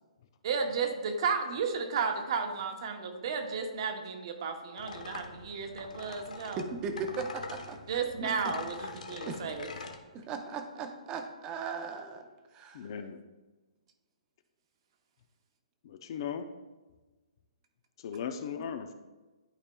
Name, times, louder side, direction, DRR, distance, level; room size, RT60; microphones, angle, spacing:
voice 1, 0.4-6.6 7.9-9.7 18.6-18.7, right 5 dB, 45° right, 5 dB, 0.9 m, -33 dB
sound 1, 4.8-10.0, left 4 dB, 90° left, 1.0 m, -44 dB
voice 2, 6.6-8.4 8.8-8.9 9.3-9.4 10.1-12.9, right 5 dB, 15° right, 6 dB, 0.6 m, -38 dB
voice 3, 12.7-13.2 15.8-16.4 18.0-18.9, left 7 dB, 40° left, 8 dB, 0.5 m, -37 dB
11.5 x 4.8 x 2.3 m, 1.2 s
hypercardioid pair, 165°, 4 cm